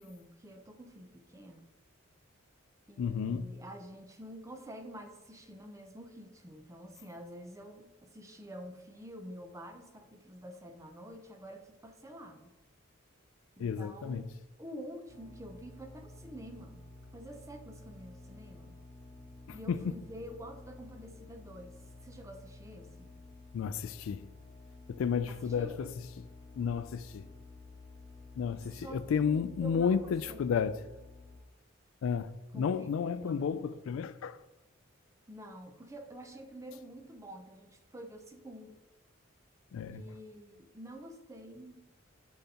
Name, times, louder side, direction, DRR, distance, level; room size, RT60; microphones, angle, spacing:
voice 1, 0.0-1.7 2.9-12.5 13.6-14.3 14.6-16.8 17.1-18.7 19.5-21.8 22.0-23.1 25.3-25.8 28.7-30.5 32.5-32.9 33.2-33.5 35.3-38.8 39.9-41.8, equal, 15° right, 0.5 m, -48 dB
voice 2, 3.0-3.5 13.6-14.2 19.7-19.9 23.5-24.3 24.9-25.9 26.6-27.3 28.4-30.8 32.0-34.4 39.7-40.0, left 6 dB, 75° left, 0.3 m, -32 dB
sound 1, 15.1-31.4, left 2 dB, 45° left, 1.6 m, -52 dB
7.0 x 5.4 x 2.9 m
head